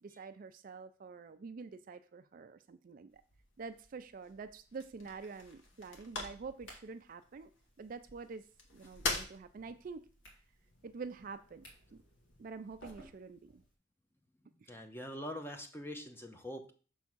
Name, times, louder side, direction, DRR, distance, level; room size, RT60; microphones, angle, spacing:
voice 1, 0.0-3.2 3.6-7.5 7.8-8.5 8.7-10.1 10.8-11.7 11.9-12.0 12.4-13.6 14.6-14.7, right 4 dB, 45° right, 10 dB, 0.4 m, -47 dB
sound 1, 3.1-13.0, left 3 dB, 85° left, 1.3 m, -46 dB
sound 2, 5.7-13.7, right 1 dB, 70° left, 2.4 m, -61 dB
voice 2, 14.4-16.7, equal, 10° left, 5 dB, 0.7 m, -44 dB
6.2 x 3.6 x 5.9 m, 0.39 s
head